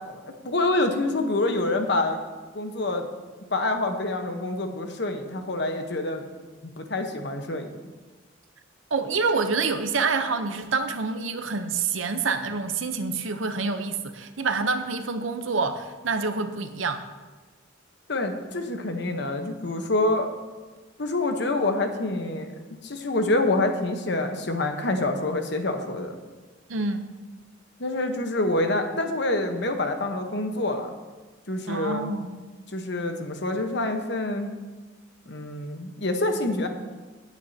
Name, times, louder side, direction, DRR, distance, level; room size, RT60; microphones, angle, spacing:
voice 1, 0.0-2.2 2.5-3.1 3.5-6.3 6.8-7.7 18.1-20.3 21.0-22.5 22.8-26.2 27.8-30.9 31.5-32.1 32.7-34.6 35.3-36.7, left 2 dB, 60° left, 5 dB, 1.1 m, -26 dB
voice 2, 8.9-17.0 26.7-27.0 31.6-32.4, right 4 dB, 80° right, 8 dB, 0.8 m, -27 dB
17.5 x 8.3 x 2.8 m, 1.3 s
head